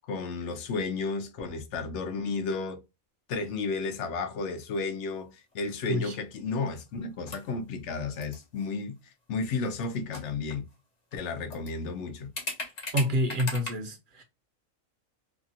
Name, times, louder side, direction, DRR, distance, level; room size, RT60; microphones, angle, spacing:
voice 1, 0.1-2.8 3.3-8.9 9.3-10.6 11.1-12.3, left 4 dB, 65° left, 0.9 m, -32 dB
sound 1, 4.8-5.2 5.5-5.6 6.5-6.9 7.1-7.5 8.2-8.7 9.9-10.0 10.1-10.7 11.1-11.2 11.5-11.7 12.4-13.7, left 2 dB, 35° left, 0.8 m, -37 dB
voice 2, 12.9-14.2, equal, 45° right, 0.8 m, -28 dB
2.8 x 2.3 x 2.6 m
omnidirectional pair, 1.4 m